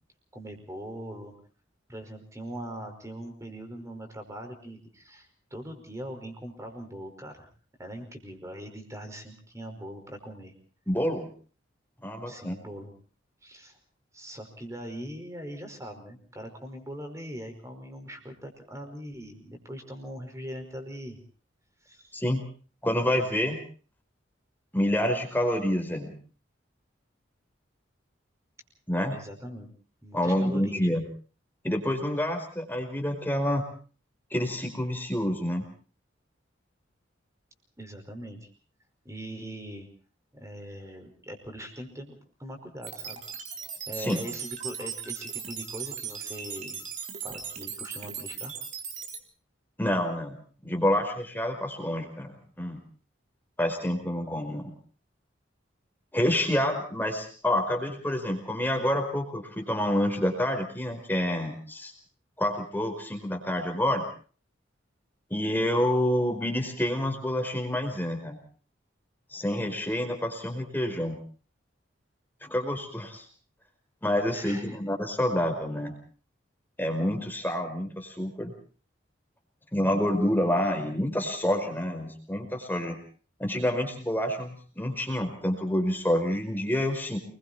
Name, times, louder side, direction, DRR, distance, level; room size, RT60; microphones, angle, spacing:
voice 1, 0.3-1.3 1.9-7.5 7.8-10.5 12.2-12.9 13.4-13.8 14.1-21.2 21.8-22.1 29.1-29.7 30.0-31.0 37.8-38.5 39.1-39.9 40.3-42.1 42.4-43.2 43.9-46.8 47.2-48.5 74.3-74.8, equal, 15° right, 5 dB, 5.2 m, -41 dB
voice 2, 10.9-11.3 12.0-12.5 22.1-22.4 22.8-23.6 24.7-26.1 28.9-29.2 30.1-31.0 31.6-33.6 34.3-35.6 44.0-44.2 49.8-50.4 50.6-52.8 53.6-54.7 56.1-61.9 62.4-64.0 65.3-68.4 69.3-71.2 72.4-73.2 74.0-75.9 76.8-78.5 79.7-83.0 83.4-87.2, left 1 dB, 10° left, 5 dB, 4.9 m, -28 dB
sound 1, 42.8-49.2, right 7 dB, 40° right, 4.1 m, -38 dB
29.0 x 22.0 x 4.3 m, 0.41 s
head